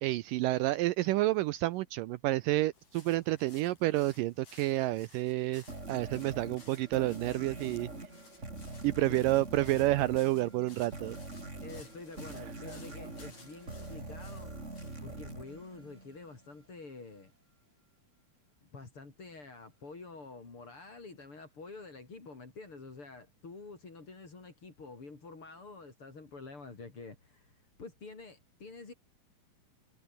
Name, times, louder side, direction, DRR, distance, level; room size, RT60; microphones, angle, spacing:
voice 1, 0.0-7.9 8.8-11.2, right 17 dB, 80° right, 2.1 m, -29 dB
sound 1, 2.7-15.0, left 4 dB, 60° left, 9.3 m, -59 dB
sound 2, 5.7-16.5, right 2 dB, 20° right, 4.7 m, -44 dB
voice 2, 11.6-14.5 15.0-17.3 18.7-28.9, left 3 dB, 35° left, 5.5 m, -48 dB
omnidirectional pair, 4.2 m